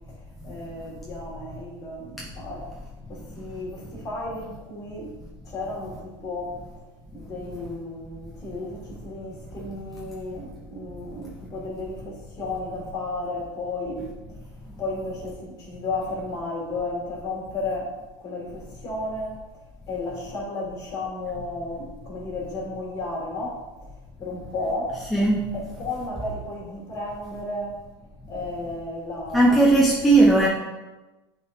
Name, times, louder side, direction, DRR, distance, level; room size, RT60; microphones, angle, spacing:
voice 1, 0.1-2.7 3.1-6.5 7.1-14.4 14.8-19.4 19.9-23.9 24.2-25.0 25.5-27.8 28.3-29.7, left 2 dB, 25° left, -3 dB, 2.0 m, -33 dB
voice 2, 25.1-25.5 29.3-30.5, right 2 dB, ahead, -3 dB, 0.5 m, -17 dB
8.8 x 4.0 x 2.6 m, 1.1 s
supercardioid pair, 160°, 15 cm